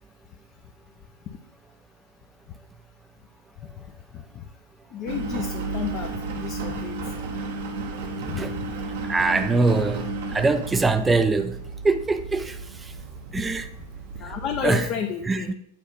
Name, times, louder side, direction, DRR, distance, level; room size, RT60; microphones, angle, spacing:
voice 1, 4.1-4.4 4.9-7.0 8.2-8.6 14.2-15.5, left 7 dB, 35° left, 0.8 m, -31 dB
Engine, 5.1-14.8, right 3 dB, 55° right, 1.1 m, -33 dB
voice 2, 9.1-11.6 11.8-12.9 13.3-13.7 14.6-14.9 15.3-15.5, right 3 dB, 10° right, 0.6 m, -23 dB
8.6 x 4.5 x 5.3 m
figure-of-eight pair, 95°, 0 cm